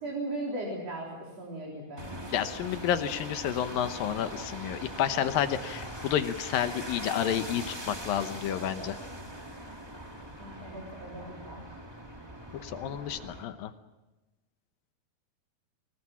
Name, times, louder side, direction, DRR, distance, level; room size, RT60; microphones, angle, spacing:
voice 1, 0.0-2.0 10.4-11.6, right 2 dB, 40° right, -2 dB, 4.8 m, -37 dB
sound 1, 2.0-13.4, right 1 dB, 15° right, 1.0 m, -41 dB
voice 2, 2.3-9.0 12.5-13.7, left 10 dB, 70° left, 10 dB, 2.5 m, -30 dB
26.0 x 20.0 x 7.3 m, 1.1 s
omnidirectional pair, 4.7 m